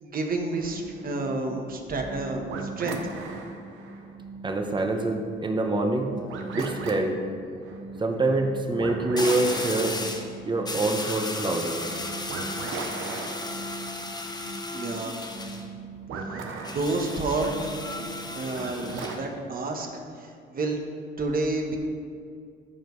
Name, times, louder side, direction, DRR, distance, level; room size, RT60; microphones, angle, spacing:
voice 1, 0.0-3.0 14.7-15.2 16.7-17.7 18.0-18.1 18.3-19.9 20.2-20.8 21.2-21.8, right 2 dB, 45° right, 3 dB, 1.3 m, -29 dB
sound 1, 0.5-19.2, right 3 dB, 85° right, 0.9 m, -38 dB
voice 2, 4.4-6.1 6.6-7.2 8.0-10.0 10.5-11.8, right 2 dB, 25° right, 4 dB, 1.0 m, -25 dB
sound 2, 6.0-6.3 9.2-10.3 10.6-15.6 16.6-19.2, left 2 dB, 20° left, 0.9 m, -35 dB
14.0 x 5.1 x 3.2 m, 2.3 s
cardioid pair, 90°, 20 cm